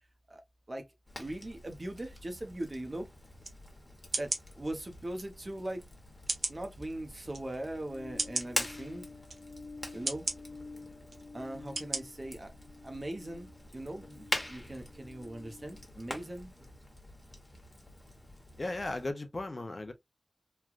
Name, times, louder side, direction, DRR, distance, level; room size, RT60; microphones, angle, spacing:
Fire, 1.1-19.1, left 1 dB, 20° left, 1.2 m, -44 dB
voice 1, 1.2-3.1 4.2-5.8 6.5-9.1 9.9-10.3 11.3-12.5 12.8-13.5 13.7-16.5, right 1 dB, 40° right, 0.8 m, -40 dB
sound 1, 3.4-3.6 4.1-4.4 5.2-5.3 6.3-6.6 7.3-7.4 8.2-8.5 9.3-9.4 10.1-10.4 11.1-11.2 11.8-12.0 12.4-12.5, right 3 dB, 85° right, 0.7 m, -33 dB
sound 2, 7.7-15.8, left 3 dB, 70° left, 0.8 m, -50 dB
voice 2, 18.6-19.9, left 2 dB, 50° left, 0.6 m, -36 dB
3.2 x 2.3 x 2.4 m
wide cardioid pair, 80°, 0 cm